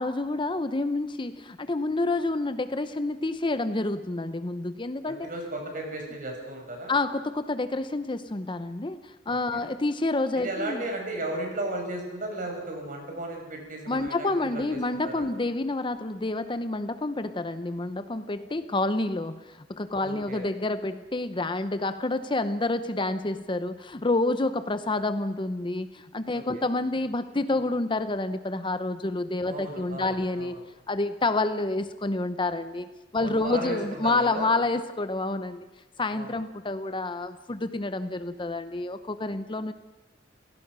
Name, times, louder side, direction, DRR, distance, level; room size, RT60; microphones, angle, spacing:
voice 1, 0.0-5.3 6.9-10.8 13.9-30.6 30.9-35.7 36.0-39.7, left 2 dB, 25° left, 11 dB, 0.8 m, -28 dB
voice 2, 5.2-6.9 9.3-9.7 10.4-15.3 20.0-20.5 26.3-26.6 29.5-30.6 33.2-34.5 36.1-36.3, right 1 dB, 45° right, 2 dB, 5.8 m, -35 dB
29.0 x 17.0 x 6.2 m, 1.1 s
head